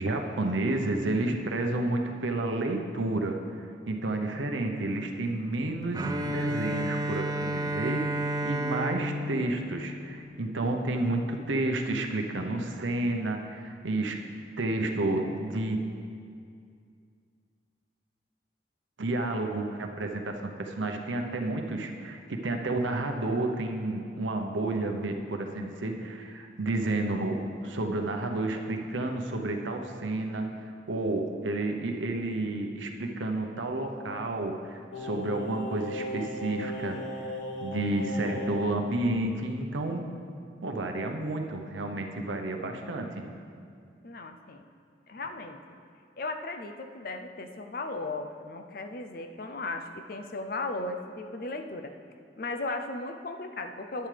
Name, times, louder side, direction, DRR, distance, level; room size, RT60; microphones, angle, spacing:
voice 1, 0.0-14.2 14.6-15.8 19.0-37.3 37.6-40.0 40.6-43.2, right 2 dB, 85° right, 3 dB, 0.8 m, -31 dB
Bowed string instrument, 5.9-10.8, right 1 dB, 20° right, 0.3 m, -32 dB
Singing, 34.9-38.8 39.1-39.2, left 1 dB, 90° left, 1.2 m, -37 dB
voice 2, 44.0-44.6 45.1-45.6 46.2-51.9 52.4-54.1, left 2 dB, 50° left, 6 dB, 0.5 m, -36 dB
11.0 x 9.5 x 3.4 m, 2.3 s
head